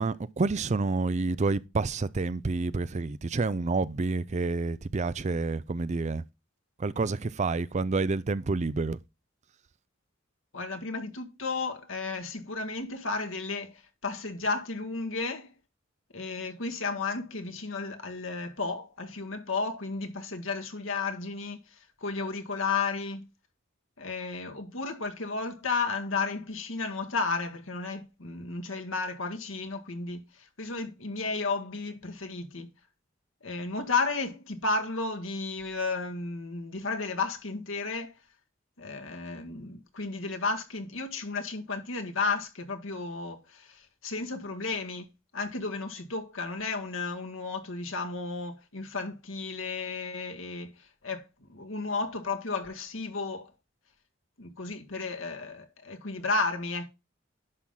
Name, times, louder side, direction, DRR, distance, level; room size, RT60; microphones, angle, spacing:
voice 1, 0.0-6.2 6.8-9.0, right 3 dB, 35° right, 0.5 m, -28 dB
voice 2, 10.5-13.7 14.0-15.5 16.1-21.6 22.0-23.3 24.0-30.2 30.6-32.7 33.4-38.1 38.8-45.1 45.3-50.7 51.0-51.2 51.5-53.5 54.4-56.9, left 4 dB, 80° left, 1.8 m, -33 dB
10.5 x 5.8 x 3.7 m
head